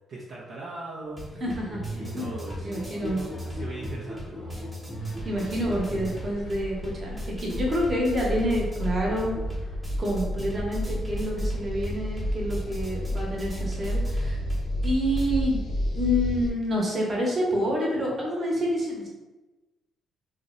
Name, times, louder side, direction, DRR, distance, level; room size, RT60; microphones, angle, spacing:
voice 1, 0.1-1.2 1.8-2.7 3.1-4.5, right 2 dB, 65° right, -5 dB, 0.5 m, -39 dB
sound 1, 1.1-15.3, equal, 10° right, 1.0 m, -43 dB
voice 2, 1.4-1.8 2.1-2.3 2.6-3.2 5.2-9.3 10.0-14.4 14.8-15.6 15.9-19.1, equal, 40° right, -3 dB, 1.0 m, -28 dB
sound 2, 1.5-9.5, equal, 15° left, 0.5 m, -38 dB
sound 3, 5.0-16.5, equal, 60° left, 0.7 m, -31 dB
2.5 x 2.1 x 3.8 m, 1.1 s
cardioid pair, 90°, 0 cm